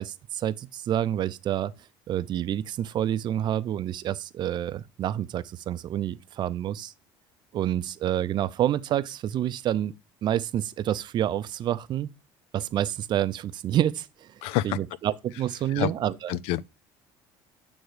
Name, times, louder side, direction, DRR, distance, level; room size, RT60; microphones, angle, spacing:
voice 1, 0.0-1.7 2.1-6.9 7.5-9.9 10.2-12.1 12.5-14.3 14.6-16.3, right 11 dB, 45° right, 0.5 m, -28 dB
voice 2, 14.4-14.8 15.7-15.9 16.3-16.6, left 15 dB, 75° left, 0.4 m, -27 dB
7.8 x 3.5 x 4.9 m
supercardioid pair, 105°, 10 cm